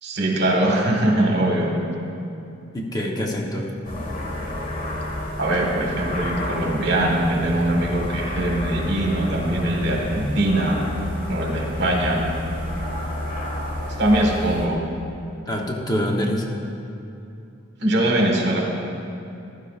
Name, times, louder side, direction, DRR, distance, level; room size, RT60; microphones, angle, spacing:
voice 1, 0.0-1.7 5.4-10.8 11.3-12.2 14.0-14.8 17.8-18.6, right 1 dB, 60° right, 0 dB, 1.6 m, -22 dB
voice 2, 2.7-3.7 15.5-16.5, equal, 20° left, 0 dB, 0.9 m, -25 dB
sound 1, 3.8-14.7, left 1 dB, 40° left, 1.5 m, -30 dB
15.0 x 11.5 x 2.5 m, 2.7 s
head